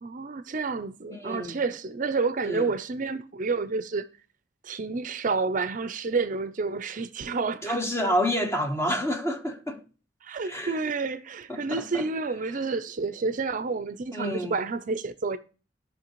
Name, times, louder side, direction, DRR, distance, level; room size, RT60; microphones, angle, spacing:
voice 1, 0.0-4.1 4.6-7.8 10.2-15.4, right 4 dB, 45° right, 0.5 m, -29 dB
voice 2, 1.1-1.5 2.4-2.7 7.6-9.8 10.4-10.8 11.5-12.0 14.1-14.5, equal, 15° left, 1.0 m, -29 dB
16.0 x 5.7 x 3.0 m
head